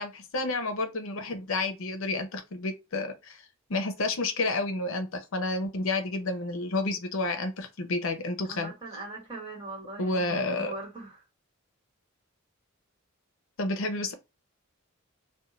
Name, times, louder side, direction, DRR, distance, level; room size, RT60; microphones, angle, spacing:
voice 1, 0.0-3.4 3.7-8.7 10.0-10.7 13.6-14.1, left 2 dB, 65° left, 0.6 m, -30 dB
voice 2, 8.5-11.3, right 2 dB, 20° right, 1.3 m, -41 dB
2.6 x 2.2 x 4.0 m
head